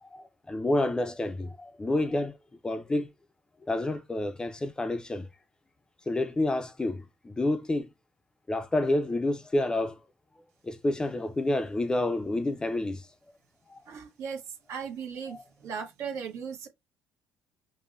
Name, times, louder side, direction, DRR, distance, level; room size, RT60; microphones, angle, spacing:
voice 1, 0.0-2.4 2.6-3.1 3.7-5.3 6.1-7.9 8.5-10.0 10.6-13.1 13.7-13.8 15.3-15.4, left 2 dB, 15° left, 0.5 m, -29 dB
voice 2, 13.9-14.4 14.7-16.7, right 6 dB, 65° right, 1.1 m, -37 dB
5.2 x 2.1 x 2.5 m
supercardioid pair, 90°, 5 cm